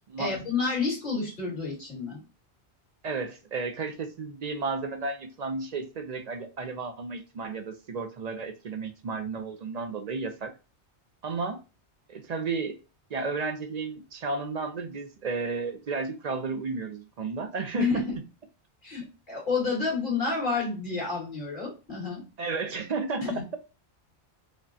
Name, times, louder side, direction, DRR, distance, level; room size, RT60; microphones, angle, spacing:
voice 1, 0.2-2.2 17.8-18.1 18.8-22.2 23.2-23.4, left 4 dB, 45° left, -4 dB, 2.2 m, -29 dB
voice 2, 3.0-10.5 11.2-11.6 12.1-12.8 13.1-18.0 22.4-23.4, right 4 dB, 55° right, 7 dB, 0.5 m, -33 dB
5.0 x 2.2 x 2.5 m, 0.31 s
omnidirectional pair, 1.1 m